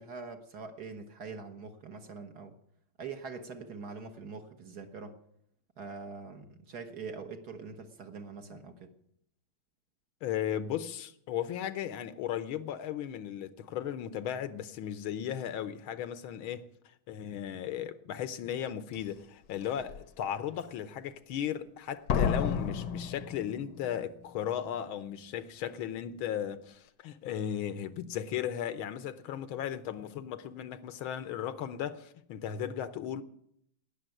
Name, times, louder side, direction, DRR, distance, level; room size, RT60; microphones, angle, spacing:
voice 1, 0.0-2.6 3.0-5.2 5.8-8.9, right 4 dB, 55° right, 1.6 m, -43 dB
voice 2, 10.2-16.7 17.1-33.2, left 10 dB, 75° left, 1.6 m, -36 dB
Slam, 18.9-19.0 19.6-20.0 22.1-24.0 24.2-24.3, left 6 dB, 60° left, 1.3 m, -31 dB
19.0 x 7.1 x 9.0 m
omnidirectional pair, 2.3 m